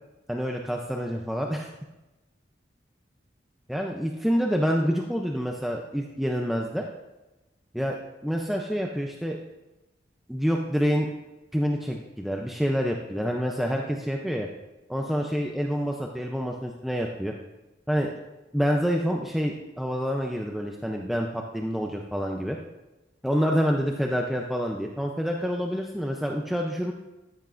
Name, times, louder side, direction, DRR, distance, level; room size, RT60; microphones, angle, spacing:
voice 1, 0.3-1.7 3.7-6.9 7.7-8.0 8.2-9.4 10.3-11.1 11.5-14.5 14.9-17.3 17.9-18.1 18.5-22.6 23.2-26.9, equal, ahead, 1 dB, 0.5 m, -27 dB
13.5 x 8.1 x 2.5 m, 1.0 s
head